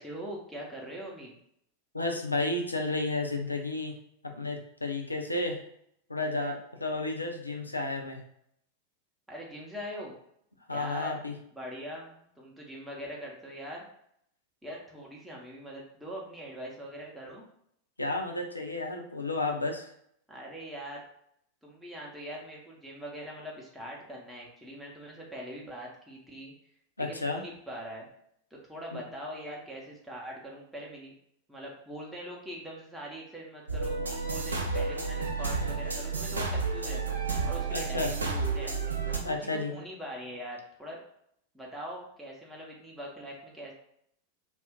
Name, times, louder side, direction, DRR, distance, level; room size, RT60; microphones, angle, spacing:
voice 1, 0.0-1.4 9.3-10.1 10.7-11.2 11.5-13.8 14.6-17.4 20.3-21.0 21.6-26.5 27.0-28.1 28.5-31.1 31.5-37.2 37.4-38.7 39.2-41.0 41.5-43.7, equal, 5° right, -4 dB, 0.7 m, -42 dB
voice 2, 1.9-4.0 4.2-5.6 6.1-8.2 10.7-11.4 18.0-19.9 27.0-27.4 28.9-29.0 37.7-38.1 39.2-39.7, left 2 dB, 80° left, 2 dB, 0.5 m, -32 dB
sound 1, 33.7-39.2, right 4 dB, 75° right, 0.6 m, -31 dB
2.4 x 2.1 x 3.5 m, 0.72 s
figure-of-eight pair, 90°, 0 cm